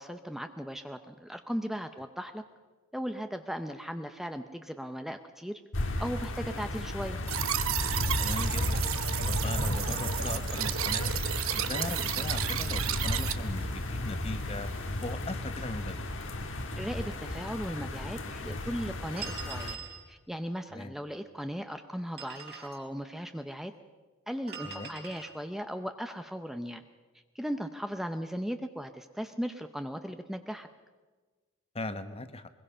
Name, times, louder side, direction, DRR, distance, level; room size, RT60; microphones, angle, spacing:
voice 1, 0.0-2.4 2.9-5.6 6.0-7.2 16.8-19.8 20.1-23.7 24.3-26.8 27.3-30.7, equal, ahead, 7 dB, 0.7 m, -37 dB
sound 1, 5.7-19.7, left 1 dB, 65° left, 1.6 m, -34 dB
sound 2, 7.3-13.3, right 10 dB, 75° right, 0.9 m, -32 dB
voice 2, 8.2-8.9 9.2-11.1 11.5-14.7 15.0-16.1 20.7-20.9 24.6-24.9 31.7-32.5, left 2 dB, 30° left, 10 dB, 1.0 m, -38 dB
sound 3, 19.2-20.0 22.0-22.8 24.5-25.3, right 6 dB, 55° right, 4.1 m, -42 dB
23.0 x 21.5 x 5.6 m, 1.3 s
head